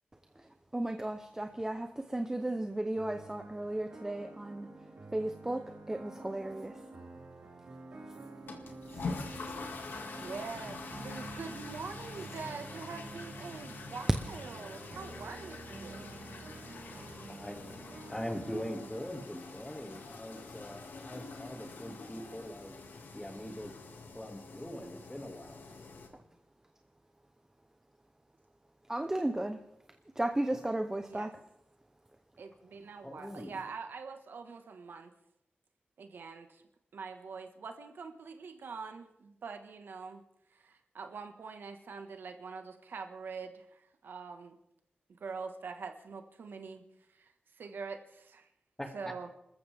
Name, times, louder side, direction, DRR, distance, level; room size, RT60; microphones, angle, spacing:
voice 1, 0.4-4.7 5.1-6.8 28.9-29.6 30.2-31.3, right 1 dB, 15° right, 6 dB, 0.8 m, -35 dB
sound 1, 3.0-18.9, right 2 dB, 60° right, 4.5 m, -48 dB
sound 2, 8.4-26.1, left 4 dB, 85° left, 2.1 m, -46 dB
voice 2, 10.1-16.1 30.9-31.3 32.4-35.1 36.0-36.6 36.9-40.2 40.5-44.6 45.1-46.8 47.1-48.5 48.9-49.3, right 5 dB, 85° right, 6 dB, 1.5 m, -44 dB
voice 3, 17.3-22.8 23.1-23.7 24.1-25.6 33.0-33.6 48.8-49.3, equal, 10° left, 4 dB, 2.2 m, -42 dB
27.0 x 14.0 x 3.5 m, 0.81 s
wide cardioid pair, 115°, 3 cm